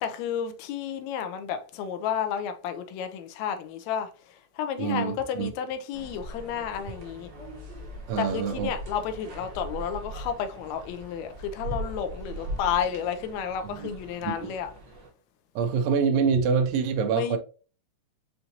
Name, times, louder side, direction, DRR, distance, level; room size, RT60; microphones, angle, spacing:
voice 1, 0.0-4.1 4.6-7.3 8.2-14.7 17.1-17.4, left 8 dB, 75° left, 1.7 m, -31 dB
voice 2, 4.8-5.5 8.1-8.7 13.6-13.9 14.2-14.5 15.5-17.4, right 6 dB, 90° right, 1.4 m, -26 dB
sound 1, 5.9-15.1, right 1 dB, 70° right, 1.0 m, -40 dB
5.7 x 2.6 x 2.7 m
omnidirectional pair, 3.6 m